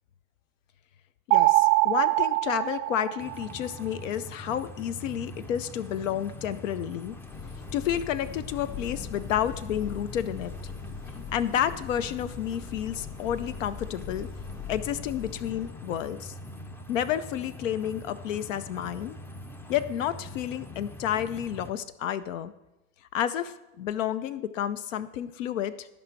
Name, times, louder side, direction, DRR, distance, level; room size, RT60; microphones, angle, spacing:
voice 1, 1.3-7.2 7.7-10.7 11.3-14.3 14.7-16.3 16.9-19.2 19.7-22.5 23.1-25.9, left 10 dB, 85° left, 14 dB, 0.6 m, -30 dB
sound 1, 1.3-3.8, right 21 dB, 60° right, 0.5 m, -23 dB
sound 2, 3.2-21.7, left 1 dB, 5° left, 0.4 m, -43 dB
sound 3, 7.0-16.0, left 7 dB, 65° left, 3.7 m, -42 dB
14.0 x 5.3 x 4.5 m, 0.96 s
hypercardioid pair, 115°, 37 cm